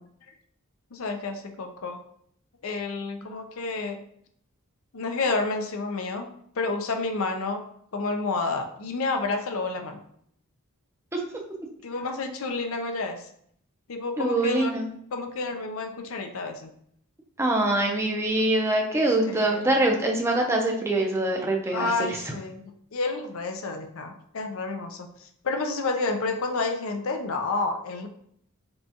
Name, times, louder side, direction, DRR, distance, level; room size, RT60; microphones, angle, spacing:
voice 1, 0.9-2.0 2.6-4.0 4.9-6.3 6.6-7.6 7.9-10.0 11.8-13.3 13.9-14.8 15.1-16.7 19.2-19.7 21.7-28.1, left 3 dB, 70° left, 5 dB, 0.5 m, -30 dB
voice 2, 14.2-14.9 17.4-22.3, right 1 dB, 10° right, 0 dB, 0.6 m, -24 dB
5.4 x 2.3 x 2.8 m, 0.66 s
head